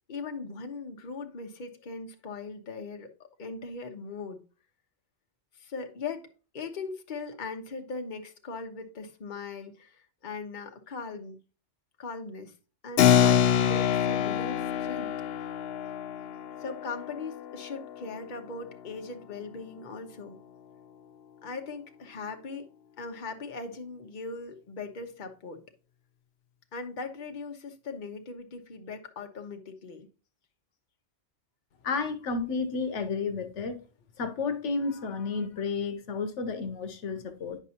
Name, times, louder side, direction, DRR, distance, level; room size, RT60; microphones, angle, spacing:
voice 1, 0.1-3.1 3.4-4.4 5.6-6.3 6.5-11.4 12.0-12.5 12.8-13.4 13.7-15.1 16.6-20.4 21.4-22.6 23.0-25.6 26.7-30.1, left 4 dB, 45° left, 1.0 m, -39 dB
Keyboard (musical), 13.0-19.0, left 9 dB, 65° left, 0.7 m, -26 dB
voice 2, 31.8-33.8 34.2-37.6, left 4 dB, 80° left, 1.1 m, -31 dB
9.5 x 5.3 x 2.8 m
omnidirectional pair, 1.2 m